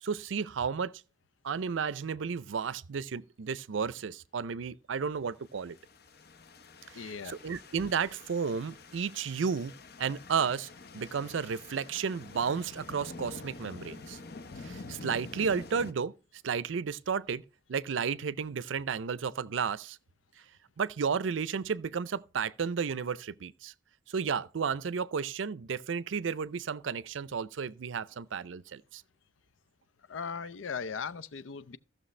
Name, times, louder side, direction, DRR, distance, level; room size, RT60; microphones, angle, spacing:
voice 1, 0.0-0.9 1.4-5.8 6.9-9.7 10.0-14.2 14.6-16.1 16.4-17.4 17.7-20.0 20.8-23.7 24.1-29.0, right 6 dB, 80° right, 0.5 m, -33 dB
sound 1, 5.6-15.9, left 3 dB, 55° left, 0.7 m, -47 dB
voice 2, 6.9-7.4 30.1-31.8, left 6 dB, 85° left, 0.6 m, -38 dB
15.5 x 6.5 x 3.2 m
head